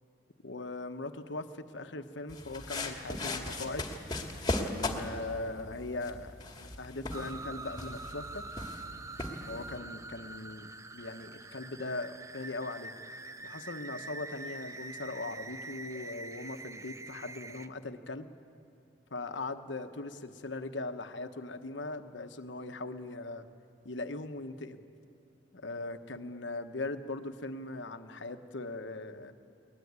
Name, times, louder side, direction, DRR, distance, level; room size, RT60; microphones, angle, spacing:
voice 1, 0.4-3.9 4.6-8.4 9.5-12.9 13.4-18.3 19.1-23.5 23.8-24.8 25.5-29.3, left 2 dB, 70° left, 8 dB, 1.2 m, -40 dB
sound 1, 2.3-9.8, left 2 dB, 20° left, 2.1 m, -38 dB
sound 2, 7.1-17.7, right 3 dB, 15° right, 0.6 m, -45 dB
22.5 x 19.5 x 9.6 m, 2.6 s
head